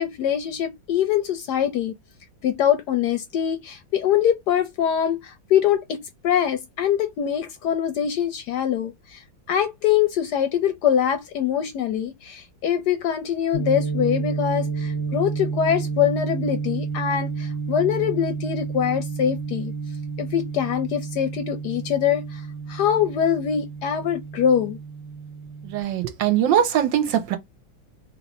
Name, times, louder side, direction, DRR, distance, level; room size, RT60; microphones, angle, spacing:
voice 1, 0.0-1.9 2.4-9.2 9.5-19.7 20.2-22.4 22.7-24.8, left 9 dB, 70° left, 1.0 m, -23 dB
sound 1, 13.5-25.8, right 5 dB, 55° left, 0.4 m, -30 dB
voice 2, 25.6-27.4, right 10 dB, 70° right, 1.4 m, -21 dB
3.2 x 3.1 x 4.1 m
omnidirectional pair, 2.2 m